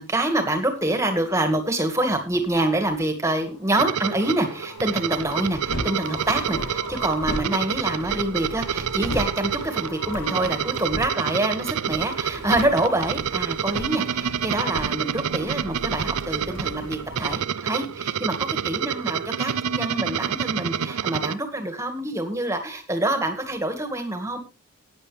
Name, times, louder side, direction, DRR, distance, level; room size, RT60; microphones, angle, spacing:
voice 1, 0.0-24.4, right 1 dB, 15° right, 6 dB, 2.0 m, -26 dB
sound 1, 3.2-11.7, left 2 dB, 20° left, 5.5 m, -42 dB
sound 2, 3.7-21.3, right 8 dB, 90° right, 0.6 m, -28 dB
sound 3, 4.8-17.4, equal, 65° left, 3.6 m, -37 dB
15.0 x 9.8 x 3.4 m, 0.29 s
head